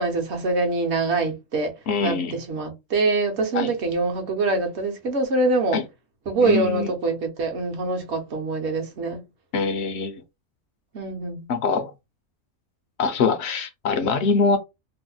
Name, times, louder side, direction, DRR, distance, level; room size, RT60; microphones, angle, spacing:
voice 1, 0.0-1.7 2.0-5.8 6.3-9.2 10.9-11.5, right 3 dB, 55° right, 1.0 m, -24 dB
voice 2, 1.9-2.3 3.5-3.7 5.7-5.8 6.4-6.9 9.5-10.2 11.5-11.9 13.0-14.6, left 4 dB, 65° left, 0.7 m, -23 dB
2.8 x 2.1 x 3.8 m
omnidirectional pair, 1.5 m